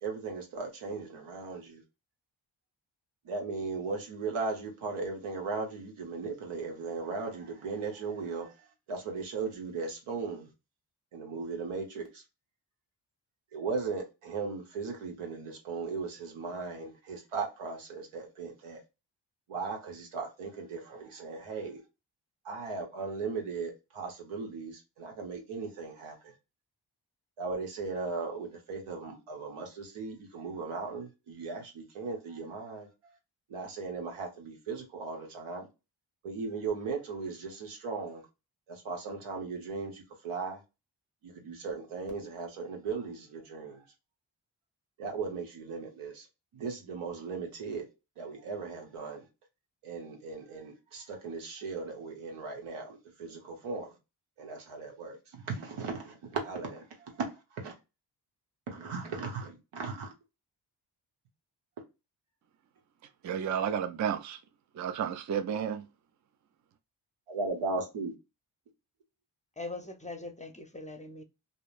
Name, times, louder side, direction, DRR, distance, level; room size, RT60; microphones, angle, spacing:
voice 1, 0.0-1.8 3.2-10.5 11.1-12.2 13.5-18.8 19.5-21.8 22.4-26.3 27.4-33.1 33.5-35.7 36.2-38.2 38.7-40.6 41.2-43.8 45.0-46.3 46.5-47.9 48.2-49.3 49.8-53.9 54.4-57.7 58.7-60.1 67.3-68.1, right 4 dB, 90° right, 1.0 m, -37 dB
voice 2, 63.2-64.4 64.8-65.9, right 8 dB, 40° right, 0.4 m, -31 dB
voice 3, 69.6-71.2, left 2 dB, 15° left, 0.5 m, -41 dB
2.8 x 2.0 x 2.3 m
supercardioid pair, 45°, 48 cm